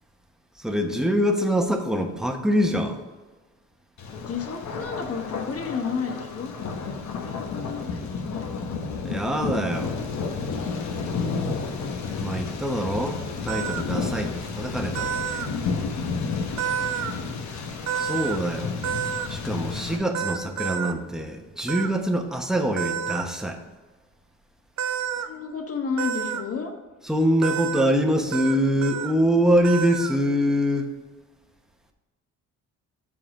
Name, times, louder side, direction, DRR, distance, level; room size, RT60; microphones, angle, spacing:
voice 1, 0.6-3.0 9.0-10.0 12.2-15.4 18.0-18.9 19.3-23.6 27.0-30.9, equal, ahead, 3 dB, 1.1 m, -24 dB
Thunder, 4.0-20.0, left 5 dB, 65° left, 1.2 m, -31 dB
voice 2, 4.1-6.5 7.2-8.5 11.0-11.5 17.0-17.5 25.1-26.7, left 6 dB, 50° left, 4 dB, 1.4 m, -32 dB
sound 1, 13.5-13.8 14.9-15.5 16.6-17.1 17.9-18.4 18.8-19.3 20.1-20.9 21.7-21.9 22.8-23.2 24.8-25.3 26.0-26.4 27.4-27.9 28.3-28.5 28.8-29.1 29.6-30.2, right 9 dB, 60° right, 0.7 m, -29 dB
7.4 x 4.2 x 6.5 m, 1.2 s
cardioid pair, 90°, 30 cm